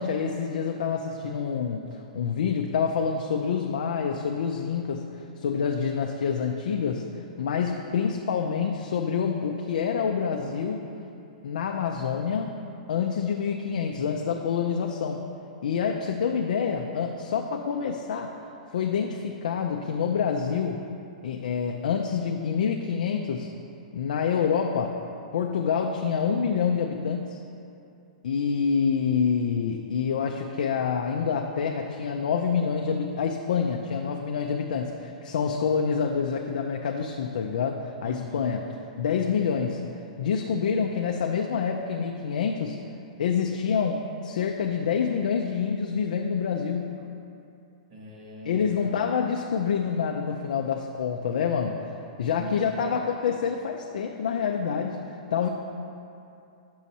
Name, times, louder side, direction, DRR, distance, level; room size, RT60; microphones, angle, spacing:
voice 1, 0.0-10.9 11.4-12.6 12.9-15.2 15.6-18.3 18.7-20.8 21.2-23.5 23.9-25.0 25.3-27.4 28.2-38.7 39.0-39.8 40.2-42.8 43.2-46.9 48.5-51.8 52.2-55.0 55.3-55.5, left 6 dB, 80° left, 2 dB, 0.4 m, -27 dB
voice 2, 38.0-38.5 47.9-48.9 52.4-53.0, equal, 60° right, -2 dB, 1.4 m, -41 dB
7.0 x 6.2 x 2.8 m, 2.6 s
hypercardioid pair, 150°, 4 cm